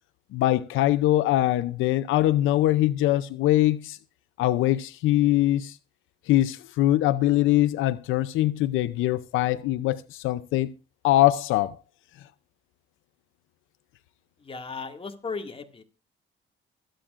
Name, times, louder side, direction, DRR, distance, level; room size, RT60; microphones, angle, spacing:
voice 1, 0.3-4.0 4.4-5.8 6.3-10.7 11.0-11.8, left 15 dB, 90° left, 0.6 m, -22 dB
voice 2, 14.4-15.8, left 4 dB, 30° left, 2.1 m, -36 dB
25.0 x 8.9 x 2.5 m
cardioid pair, 90°, 20 cm